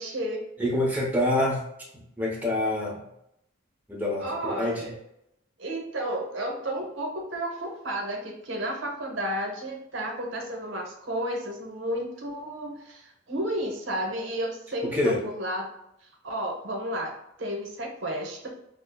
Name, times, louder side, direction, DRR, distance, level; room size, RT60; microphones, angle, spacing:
voice 1, 0.0-0.4 4.2-5.0 5.6-15.7 16.0-18.5, right 1 dB, 65° right, 0 dB, 0.9 m, -32 dB
voice 2, 0.6-1.6 1.9-3.0 3.9-4.9 14.8-15.2, left 1 dB, 10° right, -3 dB, 0.7 m, -26 dB
6.1 x 2.0 x 2.3 m, 0.79 s
head